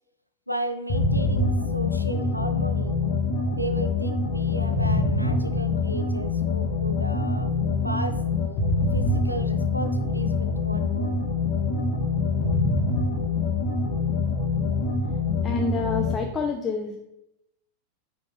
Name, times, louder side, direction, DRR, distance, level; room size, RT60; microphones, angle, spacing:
voice 1, 0.5-3.0 3.5-7.5 7.8-8.2 8.9-11.2, right 1 dB, 90° right, 8 dB, 0.4 m, -34 dB
sound 1, 0.9-16.3, left 3 dB, 45° left, 0.9 m, -25 dB
voice 2, 15.4-17.0, left 4 dB, 20° left, 3 dB, 0.4 m, -28 dB
4.8 x 3.1 x 3.3 m, 0.84 s
figure-of-eight pair, 90°, 0 cm